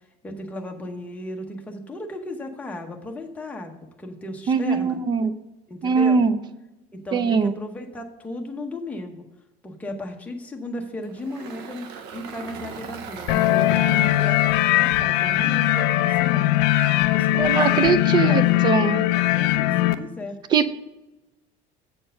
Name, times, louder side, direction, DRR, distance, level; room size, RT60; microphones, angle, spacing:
voice 1, 0.2-5.0 5.7-6.2 6.9-9.2 9.6-16.6 17.1-18.7 19.1-20.4, left 1 dB, 10° left, 2 dB, 0.8 m, -35 dB
voice 2, 4.5-5.3 5.8-6.4 7.1-7.6 17.4-19.0 20.5-20.7, right 5 dB, 25° right, 13 dB, 0.4 m, -21 dB
Engine, 11.0-16.3, right 6 dB, 60° right, 0.8 m, -39 dB
sound 1, 13.3-20.0, left 15 dB, 65° left, 0.5 m, -20 dB
7.7 x 4.5 x 6.4 m, 1.0 s
cardioid pair, 175°, 18 cm